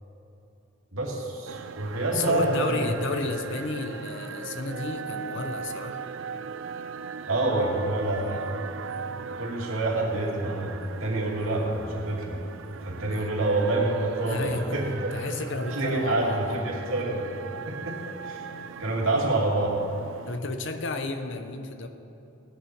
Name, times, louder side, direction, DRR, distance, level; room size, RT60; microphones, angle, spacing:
voice 1, 0.9-2.9 7.3-8.5 9.4-12.4 12.8-15.1 15.7-17.2 17.7-18.4 18.8-19.8, right 2 dB, 85° right, -2 dB, 2.6 m, -27 dB
sound 1, 1.5-20.4, right 5 dB, 65° right, 0.5 m, -39 dB
voice 2, 2.1-6.0 13.1-13.3 14.3-14.8 15.1-16.6 17.0-17.1 20.3-21.9, left 3 dB, 65° left, 7 dB, 0.9 m, -32 dB
17.5 x 10.5 x 4.6 m, 2.9 s
head